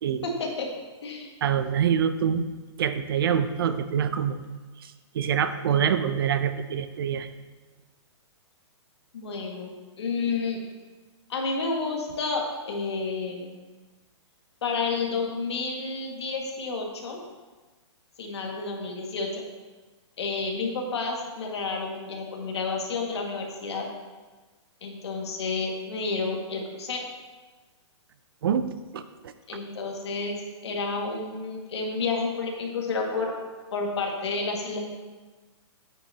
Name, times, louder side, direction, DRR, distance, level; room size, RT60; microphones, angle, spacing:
voice 1, 0.2-0.7 1.0-1.3 9.1-10.6 11.3-13.6 14.6-17.2 18.2-19.4 20.2-23.9 24.8-27.1 29.5-33.3 33.7-34.8, left 4 dB, 65° left, 0 dB, 1.8 m, -30 dB
voice 2, 1.4-2.4 2.8-4.4 4.8-7.3 28.4-28.7 28.9-29.3, right 8 dB, 50° right, 11 dB, 0.5 m, -25 dB
9.3 x 8.9 x 2.8 m, 1.3 s
hypercardioid pair, 165°, 15 cm